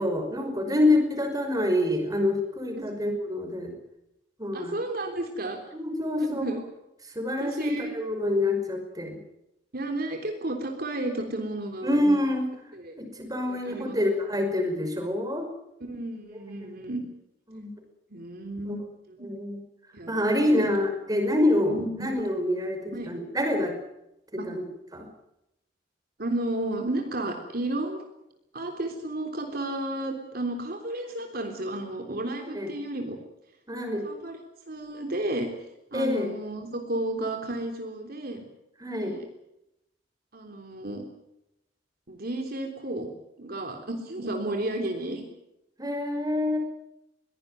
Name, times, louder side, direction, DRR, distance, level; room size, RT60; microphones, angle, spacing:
voice 1, 0.0-3.7 4.4-4.8 5.7-6.4 7.2-9.2 11.8-12.5 13.0-15.5 17.5-17.7 19.2-19.6 20.1-21.8 22.0-23.7 24.5-24.6 24.9-25.1 32.4-32.7 33.7-34.0 35.9-36.3 38.8-39.2 45.8-46.6, left 1 dB, 20° right, 5 dB, 5.4 m, -26 dB
voice 2, 4.5-5.6 6.2-6.6 7.4-8.0 9.7-12.2 12.7-13.0 13.5-14.0 15.9-17.0 18.1-18.8 19.1-19.3 19.9-20.7 21.7-22.2 22.9-23.1 24.4-24.5 26.2-28.0 28.5-33.2 34.0-34.4 34.7-35.5 35.9-38.4 38.9-39.3 40.3-41.0 42.1-43.1 43.4-45.2, right 1 dB, 55° right, 3 dB, 3.5 m, -32 dB
22.5 x 17.5 x 9.3 m, 0.86 s
head